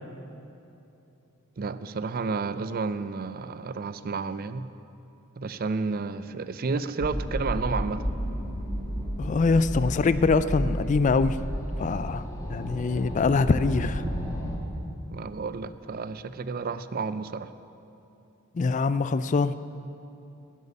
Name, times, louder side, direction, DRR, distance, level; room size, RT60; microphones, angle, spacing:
voice 1, 1.6-4.7 5.4-8.1 15.1-17.5, right 4 dB, 40° right, 13 dB, 0.4 m, -31 dB
sound 1, 7.0-14.6, equal, 15° left, 1.5 m, -32 dB
voice 2, 9.2-11.4 11.8-14.0 18.5-19.5, left 4 dB, 35° left, 14 dB, 0.3 m, -24 dB
12.0 x 8.2 x 9.9 m, 2.9 s
head